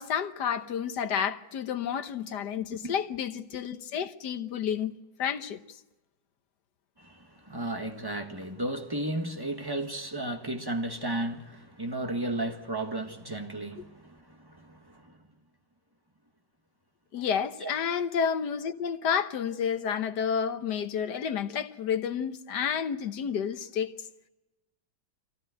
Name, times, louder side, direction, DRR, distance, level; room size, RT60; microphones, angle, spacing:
voice 1, 0.0-5.6 13.8-13.9 17.1-23.9, left 7 dB, 65° left, 1.6 m, -30 dB
voice 2, 7.0-15.2 17.6-17.7, right 1 dB, 15° right, 1.6 m, -34 dB
24.0 x 16.0 x 7.9 m
omnidirectional pair, 2.0 m